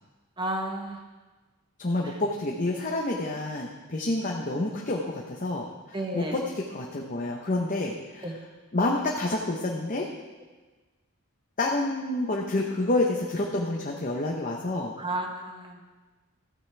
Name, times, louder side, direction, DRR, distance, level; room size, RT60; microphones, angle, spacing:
voice 1, 0.4-1.0 2.0-2.1 5.9-6.5 8.2-8.3 15.0-15.8, right 1 dB, 20° right, 2 dB, 1.1 m, -32 dB
voice 2, 1.8-8.3 8.7-10.1 11.6-14.9, left 2 dB, 35° left, -1 dB, 0.9 m, -28 dB
14.5 x 9.3 x 3.4 m, 1.3 s
head